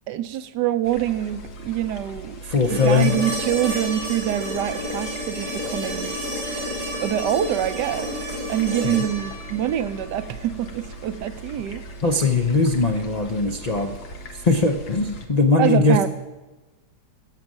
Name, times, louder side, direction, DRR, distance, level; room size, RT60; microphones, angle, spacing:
voice 1, 0.1-2.4 2.7-6.1 7.0-8.2 8.5-11.8 15.6-16.1, right 12 dB, 90° right, 12 dB, 1.3 m, -25 dB
sound 1, 0.8-15.3, right 1 dB, 70° left, 1.7 m, -40 dB
voice 2, 2.5-3.1 8.8-9.0 12.0-13.9 14.5-16.1, left 3 dB, 50° left, 1 dB, 0.4 m, -20 dB
sound 2, 2.6-10.7 12.8-12.9, equal, 20° right, 4.4 m, -31 dB
11.5 x 7.7 x 7.3 m, 1.1 s
omnidirectional pair, 1.8 m